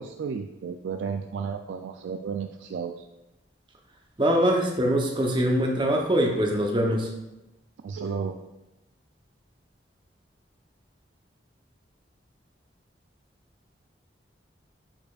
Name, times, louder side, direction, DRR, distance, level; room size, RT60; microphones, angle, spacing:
voice 1, 0.0-3.1 7.8-8.3, right 6 dB, 75° right, 6 dB, 0.3 m, -33 dB
voice 2, 4.2-7.1, equal, 25° right, 1 dB, 0.8 m, -23 dB
8.6 x 4.9 x 2.4 m, 0.97 s
head